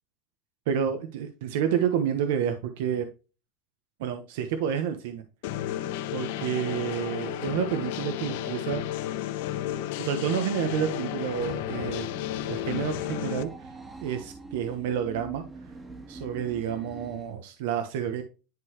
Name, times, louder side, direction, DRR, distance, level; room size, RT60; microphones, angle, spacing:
voice 1, 0.7-3.1 4.0-5.2 6.1-8.8 10.0-12.1 12.5-13.7 14.0-15.4 16.1-18.2, right 8 dB, 85° right, 8 dB, 1.0 m, -29 dB
sound 1, 5.4-13.4, left 12 dB, 75° left, 0.8 m, -32 dB
sound 2, 11.1-17.3, right 3 dB, 15° right, 1.5 m, -44 dB
10.5 x 4.0 x 2.9 m, 0.31 s
cardioid pair, 155°, 0 cm